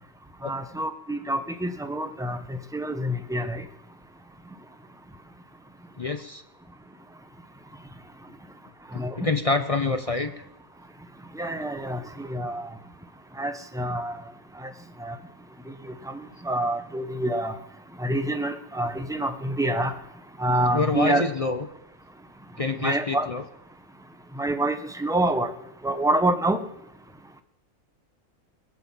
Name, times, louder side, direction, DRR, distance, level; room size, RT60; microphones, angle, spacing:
voice 1, 0.4-2.4 2.7-3.6 9.0-9.1 11.4-12.7 13.4-14.2 15.0-15.1 16.5-17.5 18.0-19.9 20.4-21.2 22.8-23.3 24.4-25.5 25.8-26.6, right 1 dB, 5° right, 7 dB, 0.7 m, -26 dB
voice 2, 6.0-6.4 9.2-10.4 20.7-21.7 22.6-23.4, left 3 dB, 35° left, 8 dB, 0.5 m, -26 dB
20.5 x 7.8 x 7.4 m, 0.82 s
omnidirectional pair, 1.6 m